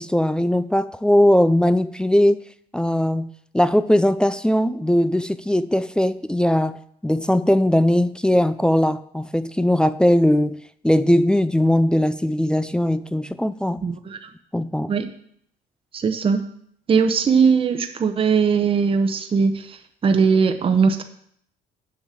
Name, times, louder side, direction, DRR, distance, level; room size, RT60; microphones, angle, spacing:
voice 1, 0.0-2.4 2.7-3.3 3.5-6.8 7.0-10.6 10.8-13.9 14.5-14.9, left 1 dB, 5° left, 14 dB, 0.3 m, -19 dB
voice 2, 13.8-14.2 14.9-15.1 15.9-16.4 16.9-19.8 20.0-21.0, right 5 dB, 35° right, 6 dB, 0.8 m, -19 dB
7.4 x 5.4 x 7.4 m, 0.68 s
cardioid pair, 110°, 17 cm